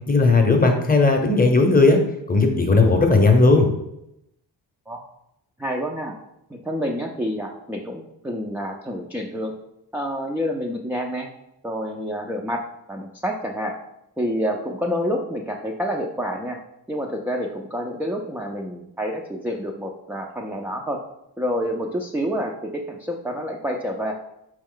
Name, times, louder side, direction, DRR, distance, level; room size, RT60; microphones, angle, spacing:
voice 1, 0.1-2.0 2.3-3.7, left 3 dB, 20° left, 4 dB, 0.8 m, -16 dB
voice 2, 5.6-6.1 6.5-9.5 9.9-11.3 11.6-12.6 12.9-13.7 14.2-16.6 16.9-21.0 21.4-24.1, equal, 5° right, 0 dB, 0.4 m, -28 dB
4.3 x 3.1 x 3.8 m, 0.83 s
cardioid pair, 70°, 44 cm